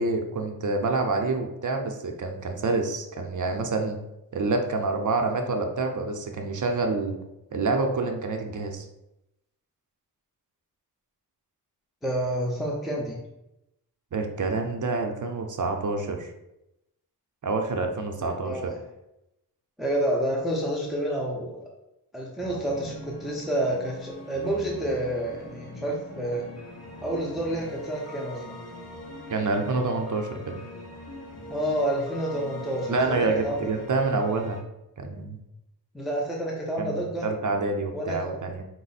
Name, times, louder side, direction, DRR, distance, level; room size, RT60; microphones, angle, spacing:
voice 1, 0.0-4.0 4.3-7.2 7.5-8.9 14.1-16.3 17.4-18.6 29.3-30.6 32.9-34.6 35.0-35.4 36.8-38.6, right 3 dB, 50° right, 4 dB, 0.6 m, -27 dB
voice 2, 12.0-13.2 18.2-18.8 19.8-21.6 22.1-26.4 27.0-28.6 31.5-33.0 33.4-33.7 35.9-37.3 37.9-38.4, right 1 dB, ahead, -2 dB, 0.6 m, -29 dB
sound 1, 22.4-34.6, equal, 45° left, 0.8 m, -42 dB
4.8 x 2.0 x 4.1 m, 0.89 s
wide cardioid pair, 125°, 38 cm